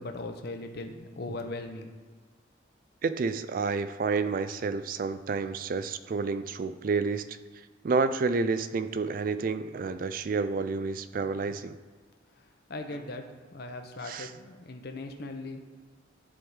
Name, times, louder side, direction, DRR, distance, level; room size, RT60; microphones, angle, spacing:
voice 1, 0.0-1.9 12.7-15.7, left 2 dB, 55° left, 5 dB, 0.7 m, -39 dB
voice 2, 3.0-7.4 7.8-11.8 12.9-13.0 14.0-14.3, right 4 dB, 45° right, 12 dB, 0.3 m, -29 dB
10.5 x 3.6 x 4.7 m, 1.5 s
head